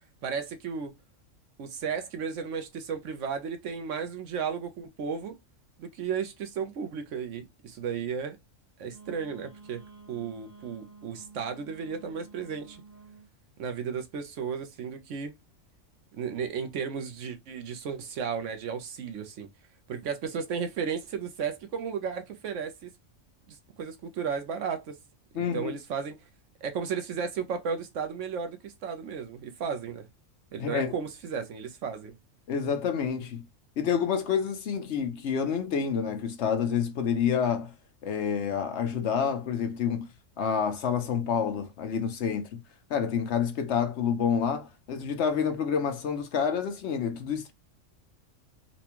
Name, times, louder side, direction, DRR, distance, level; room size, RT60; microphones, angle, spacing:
voice 1, 0.2-1.0 1.6-5.3 5.8-8.4 8.8-9.8 10.1-12.8 13.6-15.4 16.1-19.5 19.9-22.9 23.5-25.0 25.3-26.2 26.6-30.0 30.5-32.1, right 6 dB, 70° right, 1.0 m, -34 dB
Wind instrument woodwind instrument, 8.9-13.3, right 4 dB, 10° right, 0.9 m, -51 dB
voice 2, 25.3-25.7 30.6-30.9 32.5-33.4 33.8-37.7 38.0-40.1 40.4-42.6 42.9-47.5, left 7 dB, 65° left, 0.9 m, -28 dB
4.1 x 2.2 x 2.9 m
omnidirectional pair, 1.3 m